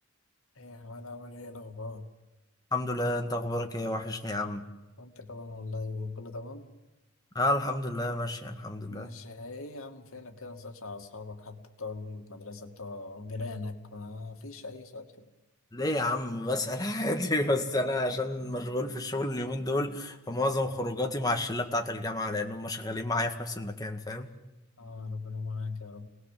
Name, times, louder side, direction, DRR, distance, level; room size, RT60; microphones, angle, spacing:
voice 1, 0.6-2.1 5.0-6.7 8.9-15.3 24.8-26.1, left 3 dB, 80° left, 2.5 m, -40 dB
voice 2, 2.7-4.7 7.4-9.1 15.7-24.3, left 1 dB, 15° left, 1.8 m, -30 dB
28.5 x 19.0 x 7.6 m
head